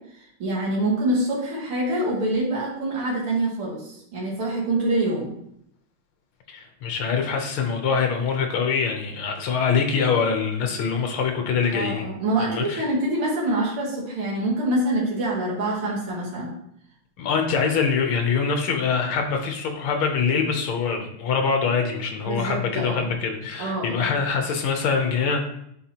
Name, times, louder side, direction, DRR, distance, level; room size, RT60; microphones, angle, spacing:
voice 1, 0.4-5.3 11.7-16.5 22.2-23.1 23.6-24.1, right 1 dB, 80° right, -5 dB, 2.6 m, -25 dB
voice 2, 6.5-12.1 12.4-12.9 17.2-25.4, left 5 dB, 75° left, 4 dB, 1.8 m, -24 dB
9.1 x 3.6 x 2.9 m, 0.74 s
omnidirectional pair, 2.3 m